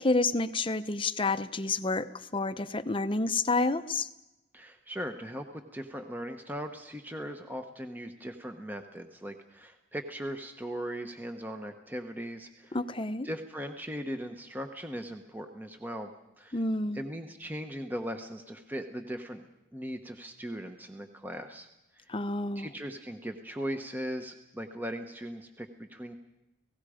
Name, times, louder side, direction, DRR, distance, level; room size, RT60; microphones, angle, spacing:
voice 1, 0.0-4.1 12.7-13.3 16.5-17.0 22.1-22.7, left 3 dB, 25° left, 10 dB, 0.7 m, -29 dB
voice 2, 4.5-12.8 13.2-16.6 16.9-19.5 19.7-21.7 21.9-22.1 22.6-26.2, equal, 10° right, 5 dB, 0.9 m, -39 dB
30.0 x 17.5 x 5.0 m, 0.93 s
head